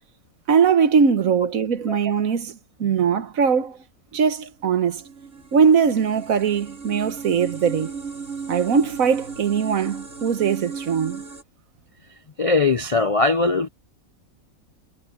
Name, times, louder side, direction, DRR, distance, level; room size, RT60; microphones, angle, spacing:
voice 1, 0.5-3.8 4.1-5.0 5.5-8.0 8.5-11.2, right 6 dB, 75° right, 1.5 m, -20 dB
sound 1, 4.6-11.4, right 5 dB, 60° right, 4.0 m, -36 dB
voice 2, 12.4-13.7, left 3 dB, 50° left, 0.4 m, -20 dB
omnidirectional pair, 1.5 m